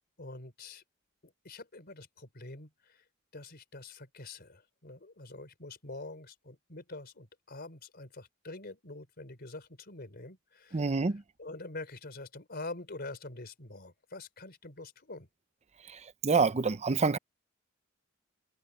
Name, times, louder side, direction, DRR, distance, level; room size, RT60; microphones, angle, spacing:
voice 1, 0.2-0.8 1.2-3.0 3.3-15.3, left 2 dB, 50° left, 4.2 m, -45 dB
voice 2, 10.7-11.2 16.2-17.2, right 4 dB, 35° right, 0.6 m, -26 dB
head